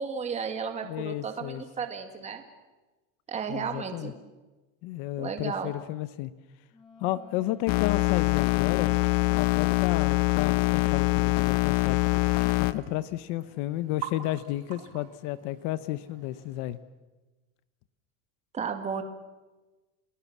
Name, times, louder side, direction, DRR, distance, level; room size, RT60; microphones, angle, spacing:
voice 1, 0.0-2.4 3.3-4.1 5.2-5.7 18.5-19.0, right 6 dB, 15° right, 6 dB, 2.1 m, -33 dB
voice 2, 0.8-1.6 3.5-4.1 4.8-6.3 7.0-9.0 9.3-12.0 12.6-16.8, left 15 dB, 45° left, 15 dB, 0.9 m, -32 dB
Wind instrument woodwind instrument, 6.7-10.2, left 2 dB, 15° left, 8.0 m, -51 dB
sound 1, 7.7-12.7, left 21 dB, 80° left, 1.1 m, -24 dB
sound 2, 9.4-16.8, right 11 dB, 65° right, 4.9 m, -47 dB
29.5 x 19.0 x 7.3 m, 1.2 s
supercardioid pair, 165°, 38 cm